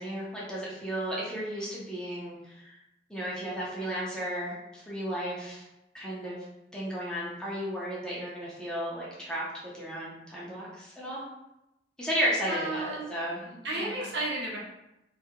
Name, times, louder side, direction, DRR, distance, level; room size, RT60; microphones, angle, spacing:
voice 1, 0.0-2.8 3.1-5.6 5.9-6.4 6.7-9.4 9.7-11.2 12.0-14.1, equal, 5° left, -7 dB, 0.5 m, -34 dB
voice 2, 12.5-13.0 13.6-14.6, right 2 dB, 70° right, -4 dB, 0.7 m, -32 dB
2.3 x 2.1 x 2.8 m, 0.89 s
head